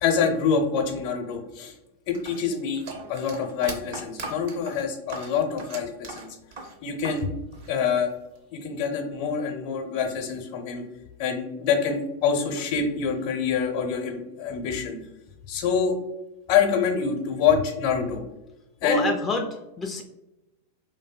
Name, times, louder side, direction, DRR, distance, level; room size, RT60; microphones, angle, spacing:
voice 1, 0.0-1.7 2.1-6.3 6.8-7.3 7.7-8.1 8.5-10.8 11.2-15.0 15.5-15.9 16.5-18.2 18.8-19.0, left 6 dB, 55° left, 3 dB, 0.6 m, -26 dB
sound 1, 2.1-7.2 7.5-8.4, right 3 dB, 60° right, 0.6 m, -39 dB
voice 2, 18.8-20.0, left 4 dB, 15° left, 1 dB, 0.3 m, -28 dB
2.6 x 2.6 x 2.2 m, 0.96 s
hypercardioid pair, 100°, 0 cm